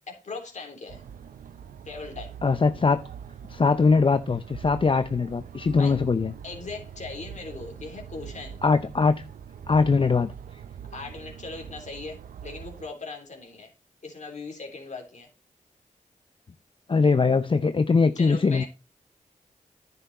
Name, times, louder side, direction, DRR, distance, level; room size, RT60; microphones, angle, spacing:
voice 1, 0.1-1.0 1.9-2.4 5.8-5.9 6.4-8.6 10.9-13.7 14.0-15.3 18.2-18.7, left 3 dB, 60° left, 3.5 m, -39 dB
sound 1, 0.9-12.9, right 8 dB, 90° right, 0.6 m, -43 dB
voice 2, 2.4-3.0 3.5-6.3 8.6-9.2 9.7-10.6 16.9-18.6, left 4 dB, 40° left, 0.5 m, -21 dB
10.5 x 6.8 x 4.1 m
cardioid pair, 60°, 14 cm